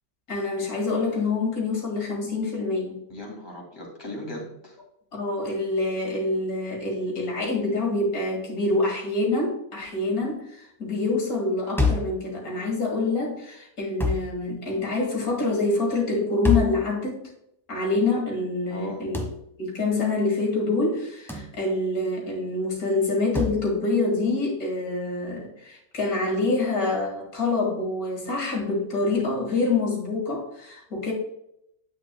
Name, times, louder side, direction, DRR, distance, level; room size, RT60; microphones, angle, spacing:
voice 1, 0.3-3.0 5.1-17.2 17.7-19.2 19.6-31.1, left 3 dB, 90° left, -1 dB, 2.5 m, -26 dB
voice 2, 3.1-4.8 18.7-19.1, left 1 dB, 15° left, -2 dB, 2.4 m, -37 dB
sound 1, 11.8-12.2 14.0-14.3 16.4-16.8 19.1-19.4 21.3-21.5 23.3-23.6, left 3 dB, ahead, 1.0 m, -25 dB
9.4 x 8.3 x 2.3 m, 0.75 s
omnidirectional pair, 1.5 m